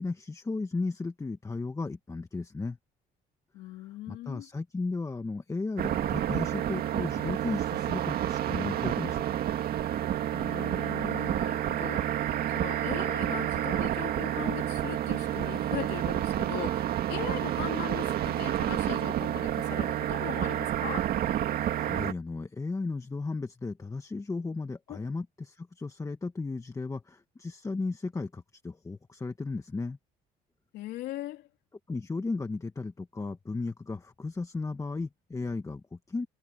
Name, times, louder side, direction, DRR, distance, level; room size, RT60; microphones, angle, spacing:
voice 1, 0.0-2.8 4.1-9.2 21.7-30.0 31.9-36.3, left 3 dB, 20° left, 1.6 m, -35 dB
voice 2, 3.5-4.5 10.3-21.1 24.9-25.0 30.7-31.5, left 15 dB, 85° left, 3.8 m, -40 dB
sound 1, 5.8-22.1, right 11 dB, 65° right, 2.1 m, -29 dB
cardioid pair, 110°, 17 cm